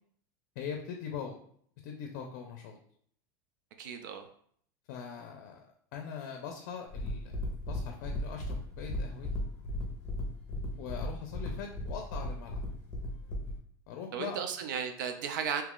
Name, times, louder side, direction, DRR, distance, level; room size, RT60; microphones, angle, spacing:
voice 1, 0.6-1.4 1.8-2.8 4.9-5.7 5.9-7.4 7.6-9.3 10.8-12.6 13.9-14.4, left 7 dB, 60° left, 3 dB, 0.5 m, -41 dB
voice 2, 3.8-4.3 14.1-15.6, right 7 dB, 90° right, 6 dB, 0.4 m, -35 dB
sound 1, 6.9-13.6, left 1 dB, 20° left, 0.8 m, -36 dB
2.8 x 2.4 x 3.6 m, 0.62 s
supercardioid pair, 160°, 10 cm